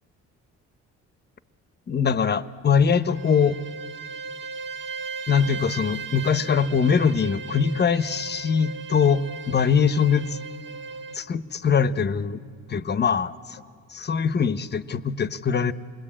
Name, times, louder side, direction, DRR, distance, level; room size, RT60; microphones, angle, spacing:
voice 1, 1.9-3.6 5.3-10.4 11.1-12.4 12.7-13.6 13.9-15.7, left 6 dB, 35° left, 14 dB, 0.9 m, -22 dB
Bowed string instrument, 2.9-11.3, right 5 dB, 40° right, 1.0 m, -37 dB
28.5 x 21.0 x 8.8 m, 2.2 s
cardioid pair, 90°, 30 cm